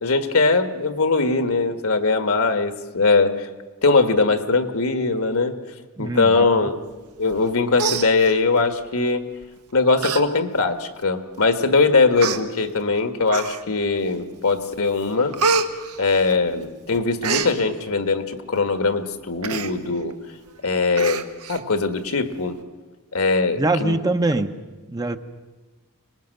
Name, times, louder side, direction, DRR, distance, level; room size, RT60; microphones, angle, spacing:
voice 1, 0.0-3.5 3.8-5.6 6.0-6.7 7.2-9.3 9.7-15.4 16.0-20.1 20.6-21.2 21.5-22.6 23.1-24.0, left 3 dB, 70° left, 9 dB, 1.6 m, -21 dB
voice 2, 6.0-6.5 23.6-24.5 24.9-25.2, right 2 dB, 20° right, 8 dB, 0.8 m, -23 dB
Human voice, 7.3-7.5 7.8-8.7 9.4-9.6 10.0-10.2 10.6-10.7 11.5-11.6 12.2-12.4 13.3-13.8 14.3-14.7 15.0-16.7 16.9-17.5 19.4-19.7 20.1-20.2 20.5-20.6 21.0-21.6 22.0-22.1, right 4 dB, 85° right, 1.3 m, -26 dB
24.5 x 20.0 x 6.6 m, 1.2 s
head